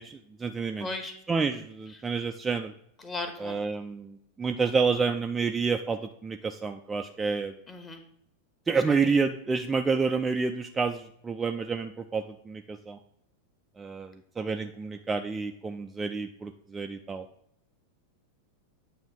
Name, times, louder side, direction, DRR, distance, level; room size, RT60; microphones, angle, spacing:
voice 1, 0.0-0.9 1.3-2.7 3.4-7.5 8.7-13.0 13.8-17.3, right 4 dB, 15° right, 5 dB, 0.4 m, -29 dB
voice 2, 0.8-1.2 1.9-2.0 3.0-3.6 7.7-8.0 8.9-9.1, left 2 dB, 20° left, 5 dB, 1.3 m, -37 dB
8.8 x 3.1 x 6.3 m, 0.72 s
figure-of-eight pair, 90°, 0 cm